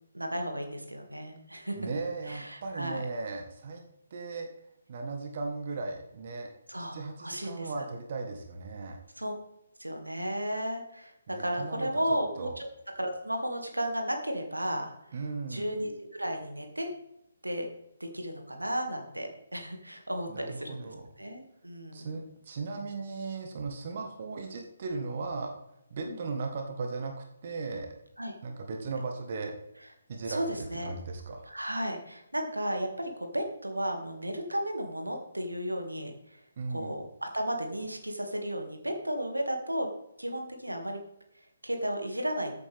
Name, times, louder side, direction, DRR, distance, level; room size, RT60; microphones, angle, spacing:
voice 1, 0.1-1.8 2.3-3.0 6.7-7.7 9.2-9.3 9.8-12.7 13.0-15.2 15.5-16.9 17.4-17.7 18.0-20.8 21.2-22.1 26.0-26.2 28.2-28.3 30.3-30.9 31.5-36.4 36.7-39.9 40.2-41.0 41.6-42.5, equal, 80° right, 4 dB, 2.2 m, -34 dB
voice 2, 1.8-3.8 4.1-4.5 4.9-6.5 6.8-9.0 11.3-11.9 12.4-12.6 15.1-15.7 20.3-21.1 21.9-25.5 25.9-27.1 27.4-27.9 28.4-29.5 30.1-30.4 30.8-31.5 36.6-36.9, right 4 dB, 40° right, 3 dB, 1.5 m, -37 dB
14.5 x 8.4 x 3.6 m, 0.83 s
figure-of-eight pair, 140°, 0 cm